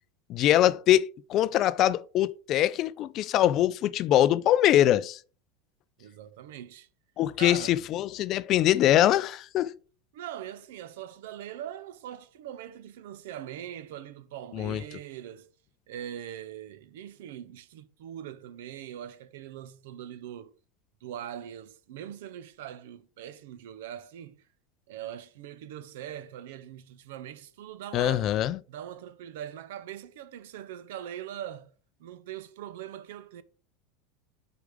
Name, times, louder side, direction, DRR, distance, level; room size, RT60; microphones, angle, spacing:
voice 1, 0.3-5.2 7.2-9.8 14.5-14.8 27.9-28.6, left 12 dB, 40° left, 0.3 m, -23 dB
voice 2, 6.0-6.9 7.4-7.8 10.1-15.5 15.9-20.5 21.0-24.5 24.9-28.3 28.7-33.4, right 11 dB, 80° right, 0.6 m, -41 dB
5.0 x 4.8 x 4.9 m
supercardioid pair, 155°, 0 cm